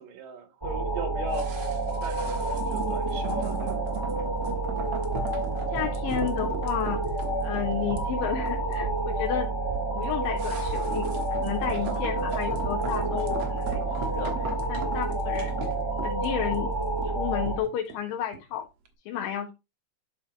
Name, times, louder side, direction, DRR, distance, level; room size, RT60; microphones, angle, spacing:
voice 1, 0.0-1.8 2.0-4.2, right 6 dB, 75° right, 2.9 m, -40 dB
sound 1, 0.6-17.6, right 2 dB, 30° right, 0.4 m, -29 dB
sound 2, 1.3-18.6 18.9-19.0, right 4 dB, 55° right, 2.0 m, -39 dB
sound 3, 4.4-4.6 5.1-5.6 6.1-6.6 7.0-7.5 7.9-8.4 8.8-9.2 9.6-10.3 10.6-11.1 11.6-12.1 12.6-13.1 13.6-14.1, right 12 dB, 90° right, 2.4 m, -39 dB
voice 2, 5.7-7.1 7.4-9.5 9.9-11.1 11.4-15.6 16.0-16.7 17.0-18.7 19.1-19.5, left 9 dB, 85° left, 2.6 m, -32 dB
11.0 x 5.7 x 3.0 m
omnidirectional pair, 4.0 m